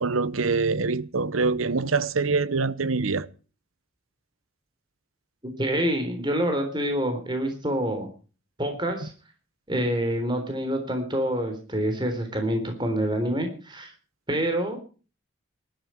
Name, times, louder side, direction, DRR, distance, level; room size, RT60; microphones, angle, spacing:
voice 1, 0.0-3.3, right 4 dB, 90° right, 1.0 m, -24 dB
voice 2, 5.4-8.1 8.6-9.1 9.7-13.9 14.3-14.8, right 1 dB, 20° right, 3.7 m, -27 dB
19.5 x 13.0 x 4.6 m
head